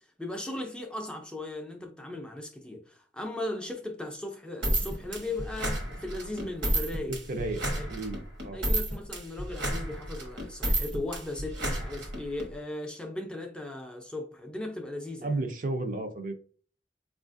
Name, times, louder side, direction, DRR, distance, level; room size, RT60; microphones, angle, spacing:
voice 1, 0.2-7.2 7.7-8.1 8.5-15.4, left 2 dB, 5° left, 0.4 m, -37 dB
sound 1, 4.6-12.5, right 1 dB, 70° right, 1.0 m, -31 dB
voice 2, 7.3-7.6 7.9-8.6 15.2-16.3, right 2 dB, 50° right, 0.5 m, -32 dB
4.6 x 2.4 x 2.4 m
head